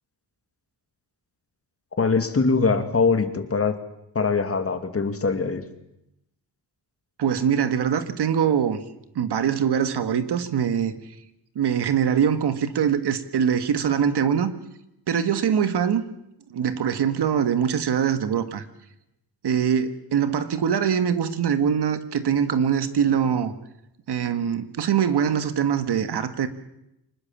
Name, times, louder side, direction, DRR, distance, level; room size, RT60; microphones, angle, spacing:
voice 1, 2.0-3.8 4.1-5.6, left 4 dB, 35° left, 9 dB, 2.3 m, -22 dB
voice 2, 7.2-8.8 9.2-10.9 11.6-14.5 15.1-16.0 16.5-18.7 19.4-23.5 24.1-26.5, right 8 dB, 85° right, 11 dB, 1.7 m, -23 dB
24.5 x 20.0 x 7.4 m, 0.84 s
wide cardioid pair, 110°, 39 cm